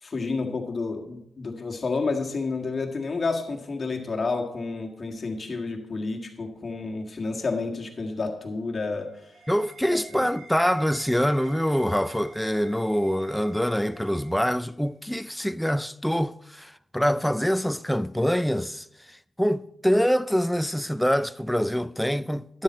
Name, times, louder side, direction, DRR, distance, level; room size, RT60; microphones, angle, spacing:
voice 1, 0.0-9.3 10.1-10.3, left 3 dB, 30° left, 1.7 m, -30 dB
sound 1, 8.6-15.0, right 2 dB, 75° right, 3.4 m, -49 dB
voice 2, 9.5-18.9 19.4-22.6, equal, ahead, 0.3 m, -25 dB
12.5 x 10.5 x 4.3 m
wide cardioid pair, 155°, 0 cm